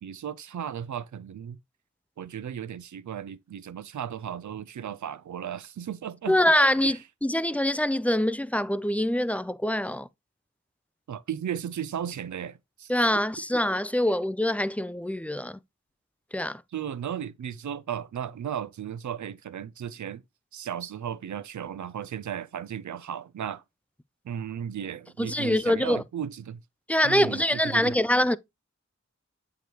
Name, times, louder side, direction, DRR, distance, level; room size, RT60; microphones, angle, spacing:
voice 1, 0.0-1.6 2.2-6.4 6.8-7.0 11.1-12.9 16.7-20.2 20.5-23.6 24.2-26.6 27.0-28.0, right 9 dB, 75° right, 0.5 m, -35 dB
voice 2, 6.3-10.1 12.9-15.6 16.3-16.6 25.2-26.0 26.9-28.4, left 1 dB, 5° left, 0.3 m, -24 dB
7.7 x 5.0 x 2.9 m
wide cardioid pair, 45°, 30 cm